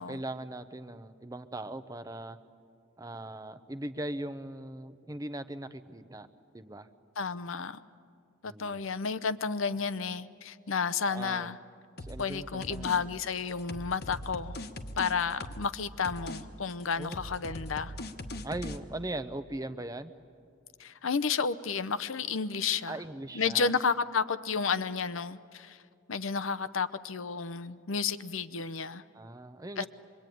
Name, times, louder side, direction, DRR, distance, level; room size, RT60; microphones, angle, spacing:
voice 1, 0.0-2.4 3.0-6.3 6.5-6.9 8.4-8.8 11.1-11.5 12.0-13.0 16.9-17.2 18.4-20.1 22.9-23.7 29.1-29.9, right 1 dB, 15° right, 0.7 m, -39 dB
voice 2, 7.2-7.8 8.4-11.6 12.2-14.5 15.0-17.9 20.8-23.0 23.3-25.8 26.1-29.0 29.8-29.9, left 5 dB, 75° left, 0.7 m, -31 dB
sound 1, 12.0-12.3 12.6-13.0 13.3-15.8 16.0-16.4 16.7-18.8, left 1 dB, 50° left, 1.2 m, -40 dB
25.5 x 22.5 x 9.3 m
head